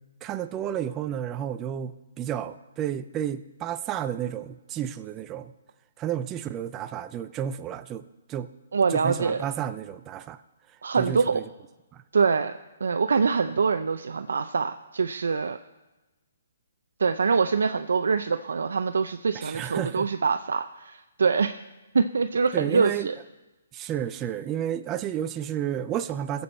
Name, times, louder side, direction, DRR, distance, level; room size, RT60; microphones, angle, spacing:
voice 1, 0.2-5.5 6.0-8.5 8.9-10.4 11.0-11.5 11.9-12.0 19.3-20.1 22.5-23.1 23.7-26.4, right 10 dB, 15° right, 11 dB, 0.3 m, -31 dB
voice 2, 8.7-9.4 10.8-11.4 12.1-12.5 12.8-15.6 17.0-21.5 21.9-23.1, right 5 dB, 85° right, 8 dB, 0.5 m, -24 dB
21.0 x 7.0 x 4.3 m, 1.1 s
hypercardioid pair, 175°, 0 cm